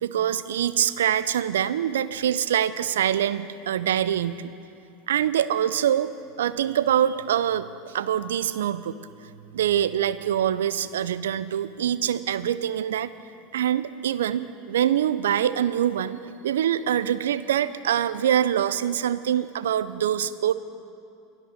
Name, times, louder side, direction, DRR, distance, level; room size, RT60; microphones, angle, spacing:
voice 1, 0.0-4.5 5.1-9.0 9.5-13.1 13.5-20.5, right 10 dB, 75° right, 15 dB, 0.5 m, -24 dB
18.0 x 11.0 x 6.7 m, 2.6 s
hypercardioid pair, 85°, 0 cm